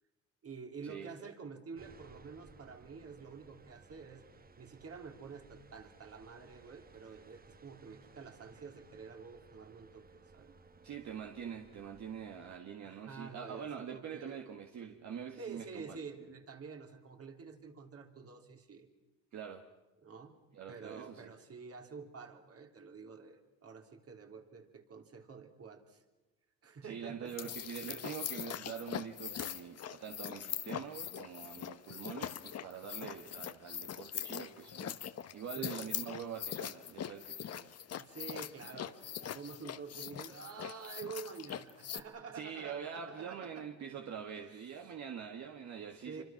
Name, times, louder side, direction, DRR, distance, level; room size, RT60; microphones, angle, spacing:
voice 1, 0.4-4.2 4.6-10.1 10.3-10.6 12.8-14.4 15.4-18.9 20.0-20.4 20.7-26.0 26.6-27.5 35.6-35.8 37.9-43.7 44.4-44.9 45.5-46.2, right 5 dB, 50° right, 4 dB, 3.5 m, -49 dB
sound 1, 1.8-12.6, right 4 dB, 30° right, 1.2 m, -60 dB
voice 2, 10.8-16.0 19.3-19.6 20.5-21.3 26.8-35.0 35.3-37.7 42.3-46.2, right 7 dB, 65° right, 4 dB, 1.9 m, -44 dB
sound 2, 27.2-42.0, left 9 dB, 55° left, 1.1 m, -42 dB
26.5 x 25.5 x 6.0 m, 1.1 s
cardioid pair, 90°, 30 cm